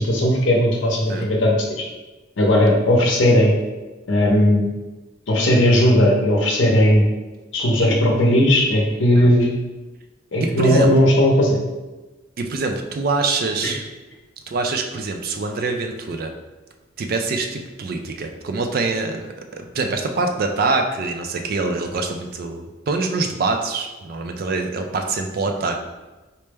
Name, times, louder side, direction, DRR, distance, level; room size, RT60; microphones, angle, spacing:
voice 1, 0.0-1.8 2.4-3.5 4.1-4.7 5.3-7.1 7.5-9.5 10.3-11.6 13.6-13.7, left 1 dB, 70° left, -2 dB, 0.7 m, -17 dB
voice 2, 10.4-10.9 12.4-13.9 14.5-16.3 17.0-19.2 19.5-25.8, right 3 dB, 50° right, 5 dB, 0.4 m, -24 dB
4.3 x 2.0 x 3.3 m, 1.2 s
head